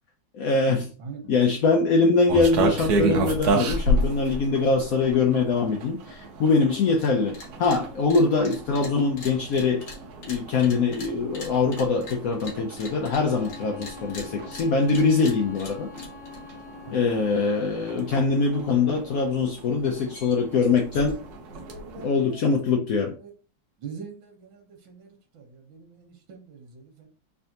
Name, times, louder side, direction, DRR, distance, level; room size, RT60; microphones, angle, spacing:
voice 1, 0.3-0.9 1.3-9.9 10.2-15.9 16.9-21.2 22.0-23.1, left 4 dB, 70° left, 0.8 m, -23 dB
voice 2, 1.0-1.3 16.8-17.3 21.5-22.7 23.1-23.3 23.8-27.1, right 5 dB, 85° right, 1.7 m, -43 dB
sound 1, 2.3-22.1, right 2 dB, 65° right, 1.2 m, -32 dB
sound 2, 7.0-7.1 7.3-7.8 8.1-13.6 13.8-16.4, left 2 dB, 55° left, 1.5 m, -41 dB
Bowed string instrument, 12.6-17.5, left 7 dB, 15° left, 1.5 m, -45 dB
3.4 x 3.4 x 2.7 m
omnidirectional pair, 2.1 m